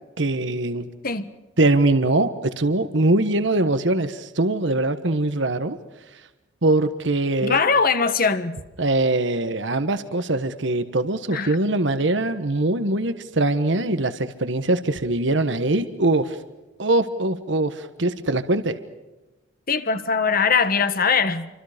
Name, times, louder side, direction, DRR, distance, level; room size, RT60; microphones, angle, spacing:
voice 1, 0.2-0.9 1.6-5.8 6.6-7.6 8.8-16.4 16.8-18.8, right 2 dB, 70° right, 1.4 m, -22 dB
voice 2, 7.4-8.6 11.3-11.6 19.7-21.5, left 5 dB, 50° left, 1.6 m, -21 dB
29.0 x 25.5 x 5.2 m
head